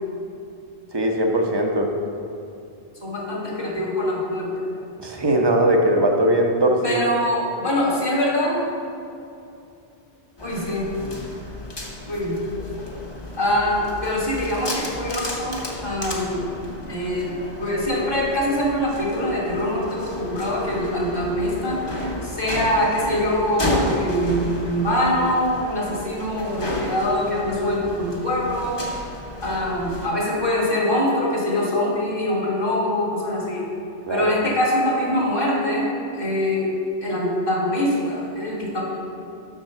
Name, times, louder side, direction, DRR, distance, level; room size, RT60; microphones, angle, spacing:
voice 1, 0.9-1.9 5.0-7.0 34.1-34.3, right 1 dB, 25° right, 2 dB, 0.8 m, -20 dB
voice 2, 3.0-4.7 6.8-8.6 10.4-10.9 12.1-12.4 13.4-16.5 16.9-28.8 29.4-33.7 34.1-36.7 37.0-38.9, left 1 dB, 60° left, -4 dB, 2.1 m, -24 dB
sound 1, 10.4-30.1, left 1 dB, 25° left, 1.0 m, -33 dB
7.4 x 6.1 x 5.7 m, 2.6 s
omnidirectional pair, 1.0 m